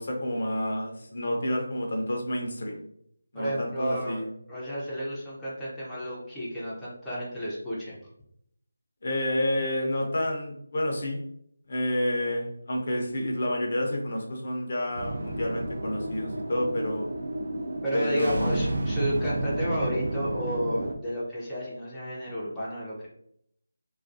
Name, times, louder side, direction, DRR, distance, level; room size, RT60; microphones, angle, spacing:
voice 1, 0.0-2.8 3.3-4.3 9.0-11.2 11.7-17.1 17.9-18.7, left 1 dB, 50° left, 1 dB, 0.6 m, -29 dB
voice 2, 3.3-8.0 17.8-23.1, equal, 5° left, -11 dB, 0.5 m, -32 dB
sound 1, 14.9-20.9, right 1 dB, 60° right, 0.4 m, -31 dB
2.3 x 2.2 x 2.5 m, 0.70 s
figure-of-eight pair, 160°, 0 cm